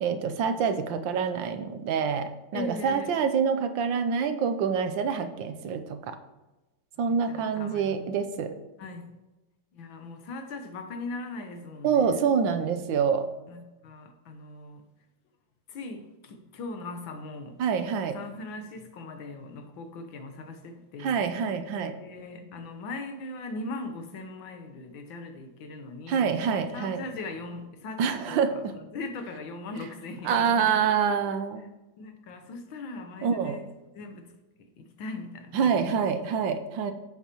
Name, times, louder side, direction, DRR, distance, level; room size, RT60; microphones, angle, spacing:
voice 1, 0.0-6.2 7.0-8.5 11.8-13.2 17.6-18.2 21.0-21.9 26.1-27.0 28.0-28.7 30.3-31.7 33.2-33.6 35.5-36.9, right 6 dB, 80° right, 9 dB, 1.4 m, -26 dB
voice 2, 2.5-3.2 7.0-8.1 8.8-9.1 9.7-12.2 13.5-14.8 15.7-17.6 18.1-21.3 22.0-26.3 26.7-28.6 28.9-30.9 31.3-31.4 32.0-33.7 34.0-34.3 34.6-36.2, left 2 dB, 80° left, 7 dB, 1.7 m, -40 dB
11.0 x 8.0 x 3.0 m, 1.1 s
omnidirectional pair, 2.1 m